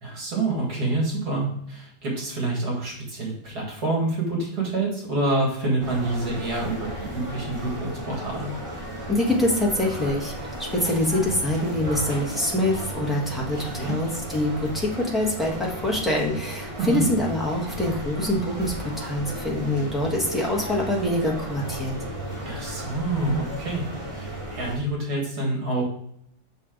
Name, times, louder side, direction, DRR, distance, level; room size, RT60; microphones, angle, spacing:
voice 1, 0.0-8.5 13.6-13.9 16.8-17.1 22.5-23.9 24.1-25.8, right 2 dB, 75° right, -2 dB, 2.4 m, -27 dB
sound 1, 5.8-24.8, right 1 dB, 20° right, 1.7 m, -35 dB
voice 2, 9.1-21.9, left 1 dB, ahead, -4 dB, 1.2 m, -25 dB
6.5 x 4.2 x 3.8 m, 0.70 s
omnidirectional pair, 1.7 m